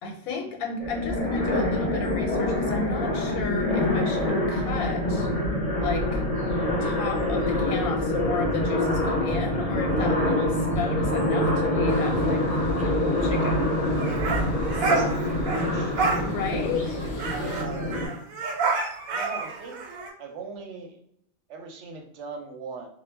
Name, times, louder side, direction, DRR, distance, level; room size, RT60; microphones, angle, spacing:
voice 1, 0.0-5.3 5.8-6.2 6.8-13.6 14.7-15.1 16.2-17.0, left 4 dB, 90° left, 3 dB, 1.0 m, -33 dB
sound 1, 0.8-18.1, left 1 dB, 45° left, 0.5 m, -25 dB
sound 2, 11.9-17.6, left 1 dB, 65° left, 0.8 m, -43 dB
sound 3, 13.9-15.7 16.0-16.2 16.6-16.7 16.9-20.1, right 4 dB, 90° right, 1.0 m, -29 dB
voice 2, 14.8-16.9 17.3-18.2 19.1-19.8 20.2-21.0 21.5-22.9, right 4 dB, 65° right, 3 dB, 0.8 m, -40 dB
2.2 x 2.1 x 3.2 m, 0.70 s
omnidirectional pair, 1.4 m